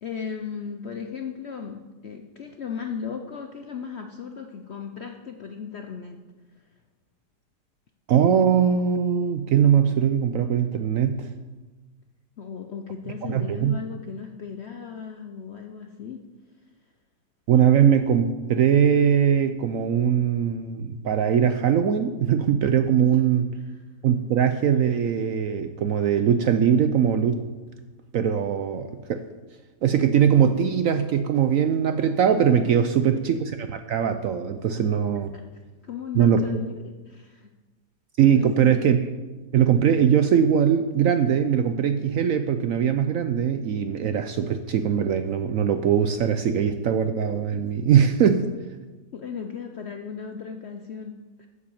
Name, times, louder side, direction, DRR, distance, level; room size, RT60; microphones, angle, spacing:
voice 1, 0.0-6.2 6.6-6.7 12.4-16.2 23.0-23.1 33.0-33.1 35.3-35.4 35.8-37.5 38.3-38.8 49.1-51.5, left 6 dB, 60° left, 5 dB, 0.7 m, -36 dB
voice 2, 8.1-11.3 13.3-13.7 17.5-23.5 24.0-27.4 28.1-29.2 29.8-33.4 33.7-35.3 36.1-36.4 38.2-39.0 39.5-48.5, right 8 dB, 70° right, 8 dB, 0.8 m, -21 dB
8.3 x 7.5 x 7.1 m, 1.2 s
omnidirectional pair, 1.8 m